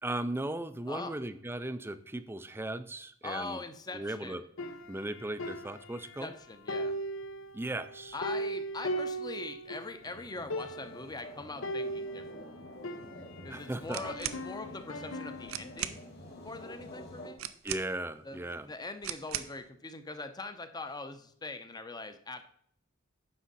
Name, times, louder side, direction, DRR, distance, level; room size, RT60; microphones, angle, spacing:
voice 1, 0.0-3.6 3.9-4.4 4.9-6.3 7.5-8.2 13.5-14.2 17.6-18.7, right 1 dB, 10° right, 12 dB, 0.5 m, -37 dB
voice 2, 3.2-4.4 6.2-7.0 8.1-12.5 13.4-16.0 16.4-17.4 18.2-22.4, left 3 dB, 20° left, 9 dB, 0.7 m, -42 dB
sound 1, 4.6-6.3 6.7-10.0 10.2-10.3 10.5-11.1 11.6-13.6 14.0-15.7, right 1 dB, 65° left, 0.7 m, -38 dB
sound 2, 10.0-17.3, left 1 dB, 50° left, 2.0 m, -49 dB
sound 3, 13.9-14.4 15.2-15.3 15.5-16.0 17.4-18.1 19.0-19.6, right 11 dB, 80° right, 0.6 m, -38 dB
9.7 x 6.3 x 4.1 m, 0.65 s
head